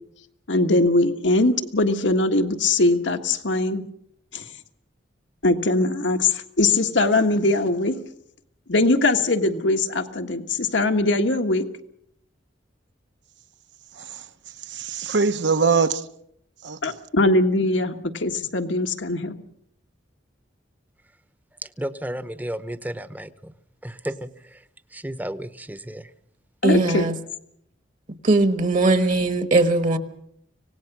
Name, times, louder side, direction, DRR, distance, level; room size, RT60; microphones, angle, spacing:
voice 1, 0.5-3.8 4.3-4.4 5.4-8.0 8.7-11.6 16.8-19.3 26.6-27.1, left 2 dB, 80° left, 1.6 m, -21 dB
voice 2, 13.9-14.3 14.6-16.1 16.6-17.0, right 5 dB, 70° right, 1.0 m, -23 dB
voice 3, 21.6-23.5 23.8-24.6 24.9-26.1, right 1 dB, 10° right, 0.9 m, -33 dB
voice 4, 26.6-27.2 28.2-30.0, right 2 dB, 45° right, 1.3 m, -19 dB
25.5 x 18.5 x 6.1 m
head